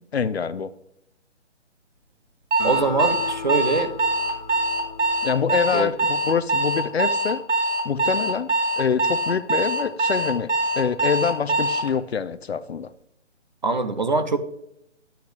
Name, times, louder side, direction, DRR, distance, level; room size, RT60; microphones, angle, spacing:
voice 1, 0.1-0.7 5.2-7.4 7.8-12.9, left 6 dB, 60° left, 0.6 m, -25 dB
Alarm, 2.5-11.9, right 2 dB, 85° right, 4.1 m, -23 dB
Acoustic guitar, 2.6-6.2, left 4 dB, 40° left, 1.5 m, -36 dB
voice 2, 2.6-3.9 5.7-5.9 13.6-14.4, right 3 dB, 40° right, 0.6 m, -23 dB
10.0 x 8.2 x 3.3 m
hypercardioid pair, 175°, 36 cm